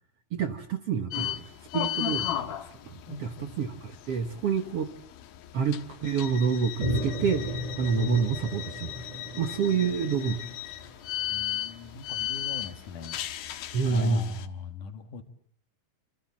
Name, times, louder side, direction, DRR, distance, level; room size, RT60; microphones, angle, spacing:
voice 1, 0.3-1.5 1.7-2.5 2.9-4.9 5.5-10.4 13.7-14.3, right 6 dB, 55° right, 8 dB, 1.8 m, -28 dB
sound 1, 1.1-14.5, left 11 dB, 85° left, 3.1 m, -36 dB
voice 2, 3.1-3.5 9.7-10.6 11.3-13.2 13.8-15.2, left 5 dB, 65° left, 8 dB, 3.1 m, -41 dB
sound 2, 6.8-11.5, equal, 10° right, 6.7 m, -35 dB
27.5 x 27.0 x 7.4 m, 0.62 s
omnidirectional pair, 4.2 m